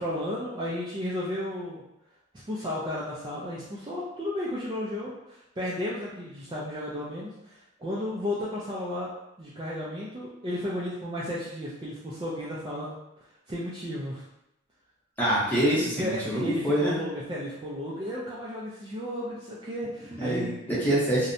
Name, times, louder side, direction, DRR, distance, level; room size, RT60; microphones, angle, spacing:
voice 1, 0.0-1.8 2.4-9.1 9.4-13.0 13.5-14.2 15.9-20.6, left 1 dB, 20° right, -7 dB, 0.3 m, -33 dB
voice 2, 15.2-17.0 20.1-21.3, right 1 dB, 10° left, -8 dB, 0.7 m, -26 dB
2.6 x 2.0 x 2.5 m, 0.85 s
head